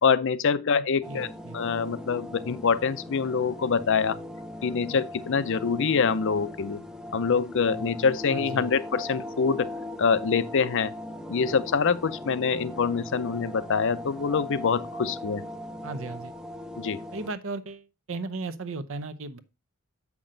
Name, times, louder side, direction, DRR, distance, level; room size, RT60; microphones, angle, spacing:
voice 1, 0.0-1.3 1.5-4.2 4.6-6.8 7.1-9.7 10.0-10.9 11.3-15.4 16.8-17.0, left 5 dB, 55° left, 0.5 m, -25 dB
voice 2, 0.7-1.6 8.3-8.7 15.8-16.3 17.1-19.4, right 3 dB, 60° right, 0.7 m, -36 dB
sound 1, 1.0-17.3, left 1 dB, 5° right, 0.6 m, -39 dB
7.6 x 6.0 x 3.8 m
head